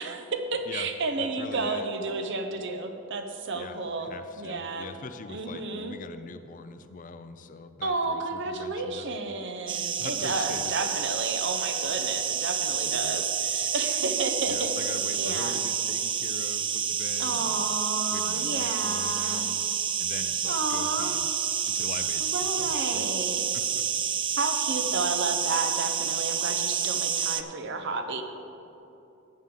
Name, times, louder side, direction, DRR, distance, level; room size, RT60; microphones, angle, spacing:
voice 1, 0.0-4.1 4.4-4.9 5.3-5.9 7.8-14.7 15.1-15.6 17.2-19.5 20.5-21.1 22.3-23.5 24.3-28.2, right 3 dB, 60° right, 7 dB, 0.8 m, -31 dB
voice 2, 1.2-1.9 3.5-9.4 10.0-10.7 12.8-13.2 14.5-17.7 18.1-19.7 20.0-21.3 21.7-23.1 23.5-23.8, left 4 dB, 40° left, 10 dB, 0.5 m, -42 dB
sound 1, 9.7-27.4, right 8 dB, 25° right, 0.3 m, -29 dB
12.5 x 8.7 x 3.8 m, 2.9 s
head